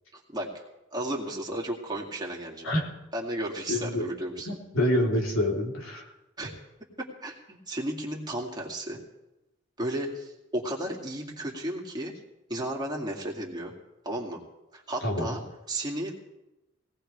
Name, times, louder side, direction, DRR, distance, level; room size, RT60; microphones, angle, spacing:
voice 1, 0.1-0.5 0.9-2.7 3.1-4.6 6.4-6.5 7.2-9.0 9.8-12.1 12.5-13.7 14.0-14.4 14.7-15.4 15.7-16.1, right 1 dB, 20° right, -1 dB, 2.4 m, -33 dB
voice 2, 3.7-4.0 4.5-6.1 15.0-15.3, left 1 dB, 80° left, -1 dB, 3.6 m, -27 dB
22.0 x 18.0 x 3.4 m, 0.98 s
head